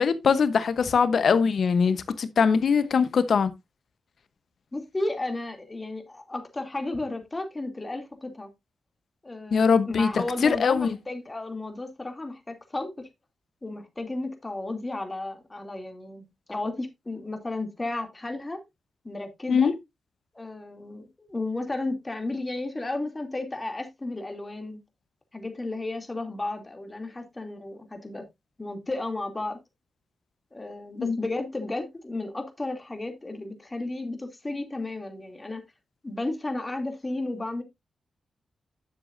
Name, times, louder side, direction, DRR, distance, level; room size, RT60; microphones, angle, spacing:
voice 1, 0.0-3.5 9.5-10.1 10.4-11.0 19.5-19.7 31.0-31.2, left 6 dB, 65° left, 1.0 m, -22 dB
voice 2, 4.7-8.5 9.2-13.1 13.6-18.6 19.0-19.7 20.3-24.8 25.3-28.2 28.6-29.6 30.5-35.6 36.0-37.6, left 2 dB, 25° left, 2.7 m, -33 dB
10.5 x 7.0 x 2.6 m
supercardioid pair, 45°, 0 cm